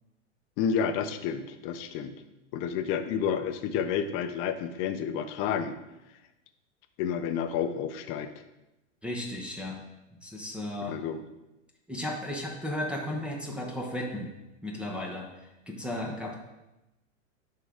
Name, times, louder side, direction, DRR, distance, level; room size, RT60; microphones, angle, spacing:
voice 1, 0.6-2.1 2.5-5.8 7.0-8.3 10.9-11.2, left 7 dB, 35° left, 9 dB, 0.6 m, -30 dB
voice 2, 9.0-9.8 10.2-11.0 11.9-14.3 14.6-16.3, left 1 dB, 5° right, -3 dB, 0.8 m, -35 dB
11.0 x 3.8 x 3.5 m, 0.96 s
hypercardioid pair, 125°, 37 cm